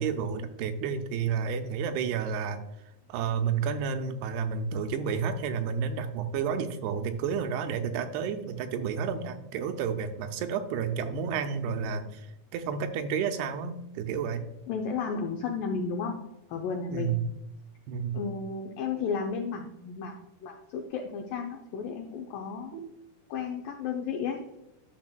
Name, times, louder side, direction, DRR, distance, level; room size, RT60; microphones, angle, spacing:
voice 1, 0.0-2.6 3.1-12.3 12.5-14.4 16.9-17.2 17.9-18.2 22.7-22.9, right 6 dB, 80° right, 7 dB, 2.6 m, -31 dB
voice 2, 14.7-16.2 16.5-17.2 18.1-20.1 20.4-22.8 23.3-24.4, left 5 dB, 80° left, 2 dB, 2.0 m, -33 dB
12.0 x 6.4 x 2.2 m, 0.90 s
omnidirectional pair, 4.8 m